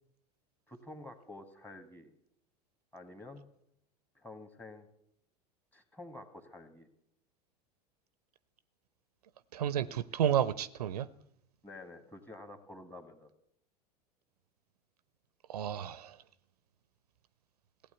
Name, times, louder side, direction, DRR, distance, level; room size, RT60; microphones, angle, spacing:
voice 1, 0.7-2.1 2.9-3.5 4.2-4.9 5.7-6.9 11.6-13.3, left 2 dB, 10° left, 1.9 m, -49 dB
voice 2, 9.5-11.1 15.5-16.2, right 10 dB, 65° right, 0.6 m, -31 dB
16.0 x 8.6 x 8.3 m
figure-of-eight pair, 85°, 21 cm